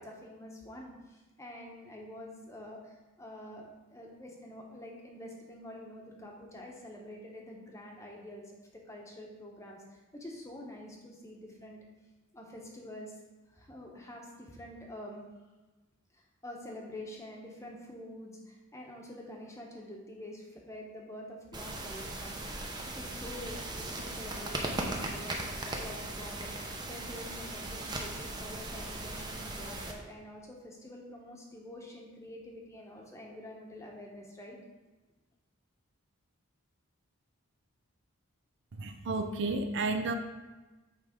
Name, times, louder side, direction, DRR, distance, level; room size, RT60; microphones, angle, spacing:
voice 1, 0.0-11.8 12.3-13.2 13.5-15.2 16.1-22.4 22.9-34.6, left 1 dB, 15° left, -1 dB, 1.0 m, -47 dB
sound 1, 21.5-29.9, right 2 dB, 20° right, 0.7 m, -38 dB
voice 2, 38.7-40.1, right 3 dB, 55° right, 6 dB, 0.5 m, -32 dB
8.9 x 3.4 x 4.9 m, 1.2 s
head